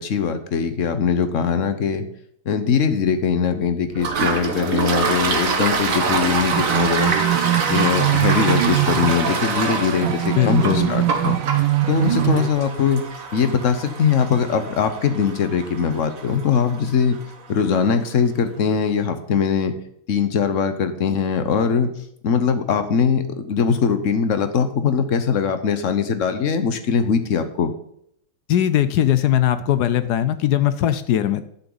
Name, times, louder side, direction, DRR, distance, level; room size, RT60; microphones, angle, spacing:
voice 1, 0.0-2.1 2.5-7.2 7.7-11.4 11.9-13.0 13.3-17.2 17.5-19.7 20.1-21.9 22.2-27.7, left 6 dB, 50° left, 10 dB, 1.0 m, -21 dB
Toilet flush, 4.0-17.3, right 4 dB, 45° right, 1.5 m, -25 dB
sound 1, 5.9-12.5, right 15 dB, 70° right, 1.2 m, -23 dB
voice 2, 10.4-10.9 28.5-31.4, left 11 dB, 75° left, 13 dB, 0.9 m, -19 dB
12.0 x 10.5 x 4.0 m, 0.71 s
omnidirectional pair, 2.4 m